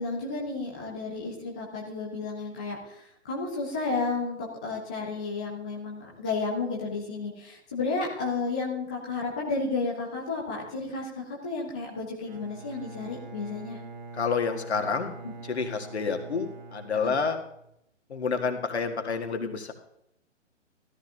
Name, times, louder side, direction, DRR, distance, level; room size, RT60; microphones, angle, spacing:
voice 1, 0.0-13.8 15.2-15.3 17.0-17.1, left 3 dB, 5° left, -3 dB, 0.4 m, -32 dB
Bowed string instrument, 12.2-17.7, right 3 dB, 40° right, 1.1 m, -44 dB
voice 2, 14.1-15.1 15.5-17.4 18.1-19.7, left 5 dB, 60° left, 5 dB, 1.8 m, -29 dB
14.5 x 13.5 x 2.7 m, 0.77 s
figure-of-eight pair, 125°, 37 cm